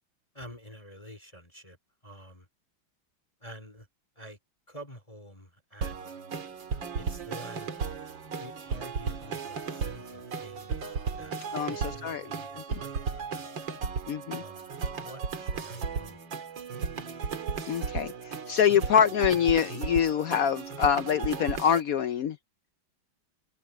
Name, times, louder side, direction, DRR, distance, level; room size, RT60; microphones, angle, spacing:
voice 1, 0.3-1.8 2.0-2.5 3.4-3.9 4.2-4.4 4.7-6.2 6.9-7.7 8.4-11.4 11.6-13.5 14.4-14.7 15.0-16.2, equal, 15° left, 3.0 m, -48 dB
sound 1, 5.8-21.8, right 5 dB, 70° right, 2.6 m, -35 dB
voice 2, 14.1-14.4 17.7-22.4, left 8 dB, 80° left, 0.8 m, -25 dB
omnidirectional pair, 2.1 m